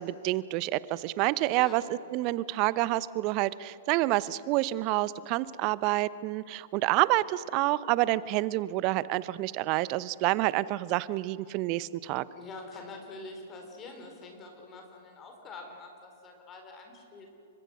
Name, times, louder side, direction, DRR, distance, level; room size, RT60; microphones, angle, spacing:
voice 1, 0.0-1.8 2.1-12.2, right 18 dB, 40° right, 19 dB, 0.8 m, -28 dB
voice 2, 12.3-17.3, left 3 dB, 25° left, 3 dB, 4.4 m, -45 dB
30.0 x 25.0 x 6.3 m, 2.8 s
figure-of-eight pair, 105°, 0 cm